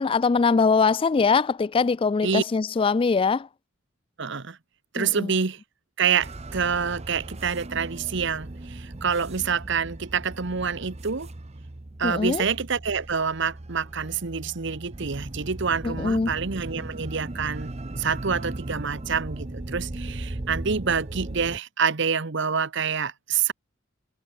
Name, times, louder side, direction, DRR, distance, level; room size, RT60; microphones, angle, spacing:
voice 1, 0.0-3.5 5.0-5.3 12.0-12.4 15.8-16.3, left 4 dB, 25° left, 0.3 m, -22 dB
voice 2, 4.2-4.6 4.9-5.6 6.0-11.3 12.0-23.5, right 6 dB, 60° right, 1.0 m, -27 dB
sound 1, 6.2-21.6, right 2 dB, 35° right, 0.9 m, -37 dB
head